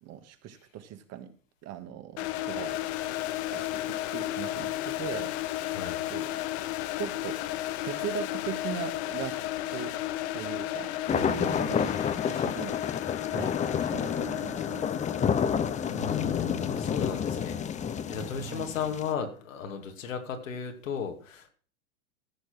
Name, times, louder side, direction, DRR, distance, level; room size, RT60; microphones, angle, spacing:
voice 1, 0.0-1.3 1.6-2.8 3.2-5.8 6.1-6.3 7.0-7.4 7.8-9.4 9.7-10.0 10.3-12.8 13.3-15.2 18.3-18.7, right 10 dB, 40° right, 9 dB, 1.7 m, -39 dB
sound 1, 2.2-19.0, left 14 dB, 60° left, 1.1 m, -34 dB
voice 2, 5.7-6.0 15.8-21.5, left 7 dB, 80° left, 5 dB, 2.6 m, -35 dB
sound 2, 11.1-19.1, left 7 dB, 20° left, 0.8 m, -30 dB
14.5 x 6.6 x 6.1 m, 0.44 s
hypercardioid pair, 105°, 39 cm